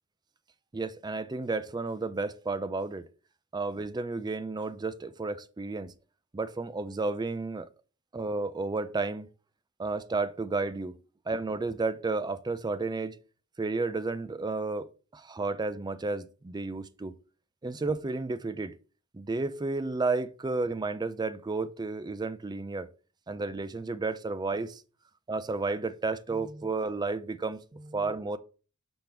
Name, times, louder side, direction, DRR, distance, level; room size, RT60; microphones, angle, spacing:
voice 1, 0.7-3.1 3.5-5.9 6.3-7.7 8.1-9.3 9.8-11.0 11.3-13.2 13.6-17.1 17.6-18.7 19.1-22.9 23.3-24.8 25.3-28.4, right 3 dB, 20° right, 0.4 m, -32 dB
6.1 x 3.4 x 5.8 m
head